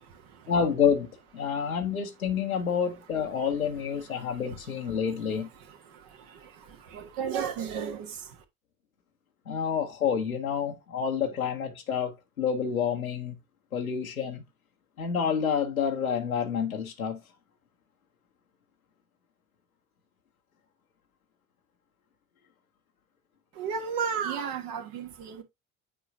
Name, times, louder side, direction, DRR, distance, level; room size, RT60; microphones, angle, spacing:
voice 1, 0.5-1.1 1.3-5.5 9.5-13.3 13.7-14.4 15.0-17.2, left 7 dB, 90° left, 0.9 m, -28 dB
voice 2, 6.9-8.1 23.6-25.4, right 7 dB, 55° right, 1.4 m, -32 dB
8.4 x 4.6 x 2.7 m
figure-of-eight pair, 60°, 41 cm